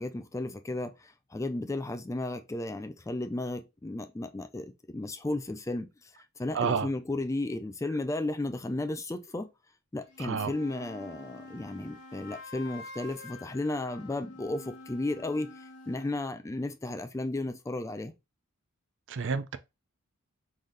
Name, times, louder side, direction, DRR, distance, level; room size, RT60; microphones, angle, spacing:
voice 1, 0.0-9.5 9.9-18.1, left 2 dB, 15° left, 0.4 m, -34 dB
voice 2, 6.5-6.9 10.2-10.5 19.1-19.6, right 6 dB, 55° right, 0.5 m, -29 dB
sound 1, 10.0-16.2, left 2 dB, 55° left, 1.2 m, -48 dB
3.9 x 3.2 x 3.9 m
head